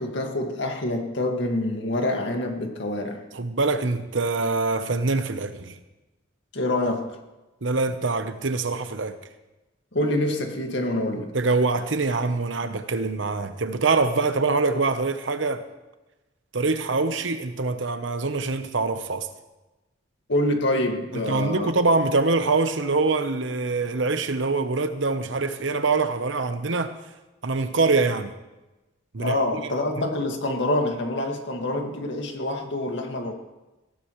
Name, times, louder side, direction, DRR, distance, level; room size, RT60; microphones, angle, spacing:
voice 1, 0.0-3.2 6.5-7.2 9.9-11.3 20.3-21.7 29.2-33.3, left 1 dB, 65° left, 2.1 m, -26 dB
voice 2, 3.3-5.8 7.6-9.2 11.3-15.6 16.5-19.3 21.3-26.9 27.4-28.3 29.1-29.7, right 3 dB, 75° right, 1.0 m, -24 dB
19.5 x 16.0 x 3.2 m
head